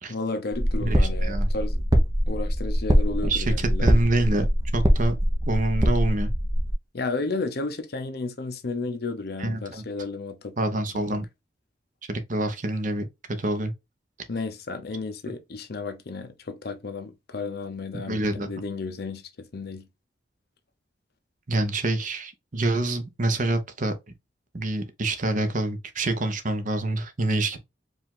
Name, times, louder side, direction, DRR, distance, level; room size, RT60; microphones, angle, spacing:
voice 1, 0.1-1.8 2.3-3.9 6.9-10.6 10.9-11.3 14.3-19.9, left 3 dB, 60° left, 0.7 m, -33 dB
sound 1, 0.5-6.7, equal, 20° right, 0.8 m, -23 dB
voice 2, 0.8-1.5 3.2-4.5 4.7-5.1 5.5-6.3 9.4-9.8 10.6-11.3 12.1-13.1 13.4-13.7 18.1-18.5 21.5-23.9 24.5-27.6, right 2 dB, 45° right, 0.9 m, -26 dB
4.9 x 2.6 x 3.7 m
head